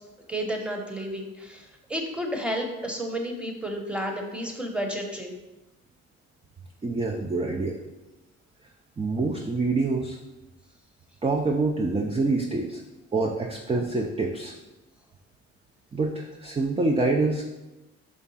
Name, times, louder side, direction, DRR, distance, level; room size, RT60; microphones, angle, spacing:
voice 1, 0.3-5.3, equal, 5° right, 2 dB, 1.1 m, -31 dB
voice 2, 6.8-7.8 9.0-10.2 11.2-12.8 13.1-14.5 15.9-17.4, right 3 dB, 20° right, 2 dB, 0.5 m, -26 dB
5.2 x 3.6 x 5.5 m, 1.0 s
cardioid pair, 90°, 30 cm